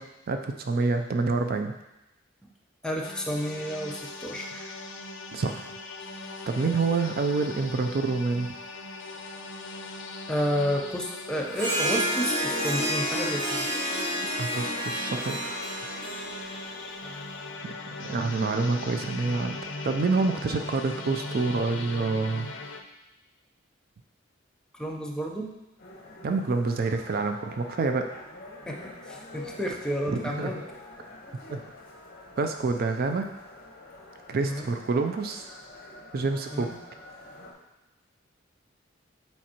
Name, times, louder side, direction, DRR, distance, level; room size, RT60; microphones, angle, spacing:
voice 1, 0.0-1.7 5.3-5.7 6.5-8.5 14.4-15.7 17.6-17.7 18.0-19.6 19.8-22.5 26.2-28.1 30.1-30.5 31.5-31.6 32.4-33.3 34.3-35.4 36.1-36.7, right 3 dB, 50° right, 6 dB, 0.4 m, -27 dB
voice 2, 2.8-4.7 10.3-13.7 24.7-25.5 28.7-30.6 34.4-34.7 36.5-36.8, equal, 5° left, -1 dB, 0.6 m, -31 dB
sound 1, 3.0-22.8, left 3 dB, 70° left, 0.6 m, -39 dB
Harp, 11.5-17.2, equal, 80° right, 1.9 m, -30 dB
sound 2, 25.8-37.5, left 2 dB, 50° left, 1.0 m, -46 dB
7.5 x 4.4 x 2.9 m, 0.95 s
head